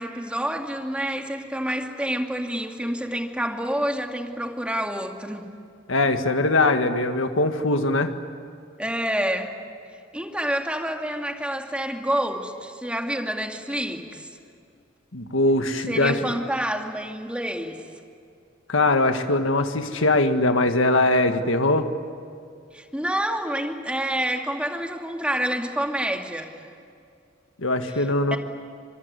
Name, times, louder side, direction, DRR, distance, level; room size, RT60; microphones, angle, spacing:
voice 1, 0.0-5.5 8.8-9.5 10.1-14.3 15.9-17.8 22.7-26.7 28.0-28.4, right 1 dB, 5° right, 3 dB, 2.3 m, -28 dB
voice 2, 5.9-8.1 15.1-16.2 18.7-21.9 27.6-28.4, left 2 dB, 90° left, 7 dB, 1.8 m, -21 dB
25.5 x 22.5 x 9.7 m, 2.5 s
head